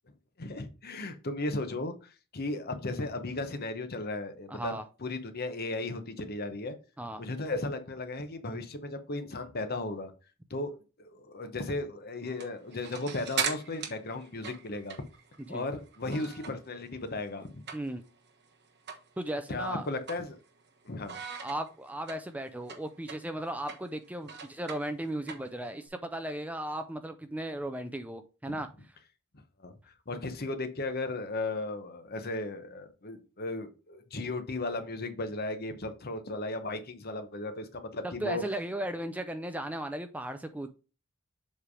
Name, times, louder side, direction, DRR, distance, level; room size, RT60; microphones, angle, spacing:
voice 1, 0.4-6.8 7.2-10.1 10.5-15.0 15.5-17.6 19.5-20.4 20.8-21.2 28.5-28.6 29.6-29.7 30.1-38.4, left 2 dB, 45° left, 0.9 m, -35 dB
voice 2, 4.5-4.8 7.0-7.2 15.5-15.6 17.7-18.0 19.2-19.8 21.4-28.7 38.2-40.7, right 1 dB, 5° right, 0.4 m, -36 dB
sound 1, 12.2-16.7 17.0-18.2 18.5-18.6 18.9-19.1 19.5-20.7 21.1-25.9, right 6 dB, 50° right, 1.3 m, -39 dB
7.5 x 3.3 x 4.8 m
head